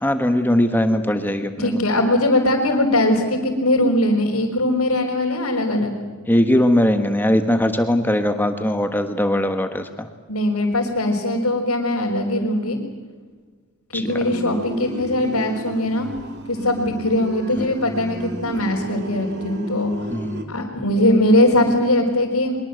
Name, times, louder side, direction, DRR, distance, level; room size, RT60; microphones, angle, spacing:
voice 1, 0.0-1.8 6.3-10.1 13.9-14.1 17.6-17.7 20.1-20.5, left 1 dB, 10° left, 7 dB, 1.3 m, -20 dB
voice 2, 1.6-5.9 10.3-12.8 13.9-16.1 16.5-19.9 20.5-22.6, left 1 dB, 80° left, -4 dB, 4.4 m, -20 dB
sound 1, 14.1-20.4, right 1 dB, 50° right, 2.7 m, -34 dB
24.0 x 22.5 x 7.9 m, 1.5 s
head